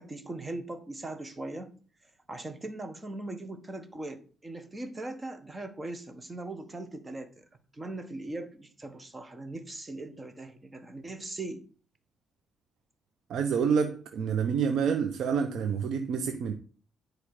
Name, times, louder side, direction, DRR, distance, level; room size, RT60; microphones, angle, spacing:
voice 1, 0.0-1.7 2.3-7.4 7.7-11.6, right 2 dB, 20° right, 8 dB, 1.6 m, -40 dB
voice 2, 13.3-16.5, right 6 dB, 75° right, 6 dB, 1.0 m, -28 dB
10.5 x 4.8 x 5.0 m, 0.38 s
cardioid pair, 90°, 0 cm